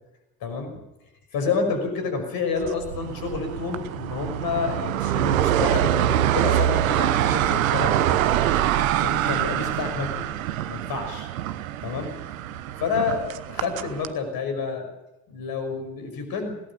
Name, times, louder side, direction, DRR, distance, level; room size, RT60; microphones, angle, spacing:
voice 1, 0.4-0.8 1.3-8.6 9.0-10.3 10.7-11.3 11.8-12.1 12.8-13.2 13.5-14.9 15.3-16.6, left 5 dB, 55° left, 6 dB, 5.8 m, -29 dB
sound 1, 2.6-14.1, right 12 dB, 75° right, 1.0 m, -24 dB
21.0 x 18.0 x 7.1 m, 0.96 s
figure-of-eight pair, 50°, 41 cm